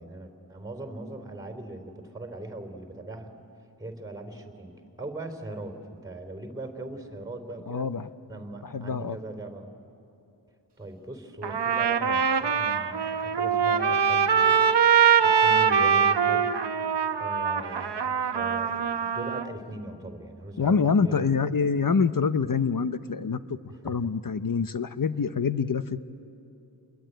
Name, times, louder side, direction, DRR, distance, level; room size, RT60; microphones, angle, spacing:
voice 1, 0.0-3.5 3.8-7.9 8.3-9.7 10.8-14.7 14.9-16.6 17.1-21.3 23.7-24.1, right 2 dB, 10° right, 5 dB, 3.4 m, -40 dB
voice 2, 7.7-8.1 8.6-9.2 20.6-23.6 23.8-26.1, left 5 dB, 50° left, 12 dB, 0.9 m, -26 dB
Trumpet, 11.4-19.5, right 7 dB, 75° right, 1.0 m, -23 dB
29.5 x 21.5 x 9.3 m, 2.8 s
wide cardioid pair, 70°, 41 cm